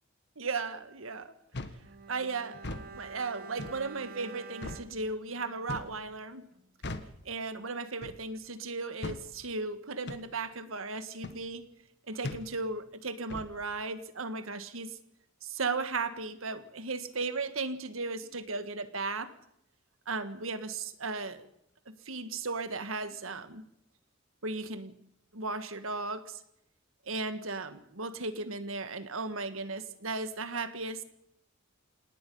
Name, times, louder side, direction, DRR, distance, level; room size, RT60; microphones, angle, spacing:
voice 1, 0.4-1.3 2.1-2.6 2.9-6.4 7.3-11.7 12.1-14.9 15.4-19.3 20.1-21.5 21.9-23.6 24.4-24.9 25.3-26.4 27.1-31.0, right 3 dB, 85° right, 10 dB, 1.7 m, -36 dB
sound 1, 1.5-1.8 2.5-2.9 3.6-3.8 4.6-4.9 5.7-6.0 6.8-7.1 8.0-8.2 9.0-9.2 10.1-10.2 11.2-11.4 12.2-12.5 13.3-13.5, left 2 dB, 60° left, 1.5 m, -39 dB
Bowed string instrument, 1.8-6.2 6.5-6.7, right 5 dB, 45° right, 1.2 m, -48 dB
27.0 x 18.5 x 5.6 m, 0.77 s
head